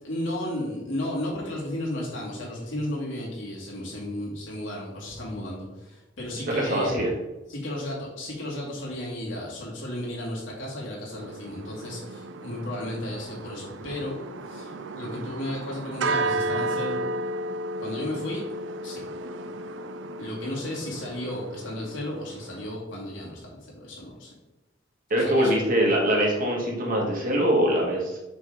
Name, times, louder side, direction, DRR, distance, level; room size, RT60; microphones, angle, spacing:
voice 1, 0.0-6.9 7.5-14.2 14.4-17.0 17.8-18.4 18.8-19.0 20.2-24.3 25.2-25.5, left 1 dB, 90° left, -4 dB, 2.3 m, -34 dB
voice 2, 6.5-7.1 25.1-28.2, right 1 dB, 50° right, -2 dB, 1.7 m, -23 dB
sound 1, 11.1-22.8, right 2 dB, 75° right, 0.4 m, -33 dB
6.0 x 3.8 x 4.9 m, 1.0 s
head